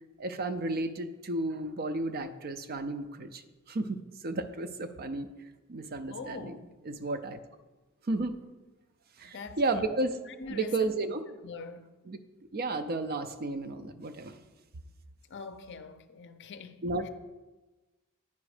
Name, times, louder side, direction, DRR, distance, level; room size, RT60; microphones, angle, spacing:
voice 1, 0.2-3.4 3.7-4.0 4.2-5.3 5.7-6.6 6.9-7.4 8.1-8.4 9.2-10.2 10.5-11.2 12.1-12.2 12.5-14.4 16.8-17.1, right 2 dB, 45° right, 0.5 m, -32 dB
voice 2, 6.1-6.7 9.2-9.9 10.3-10.9 11.4-11.9 15.3-17.1, left 4 dB, 50° left, 0.5 m, -43 dB
9.6 x 5.1 x 4.9 m
head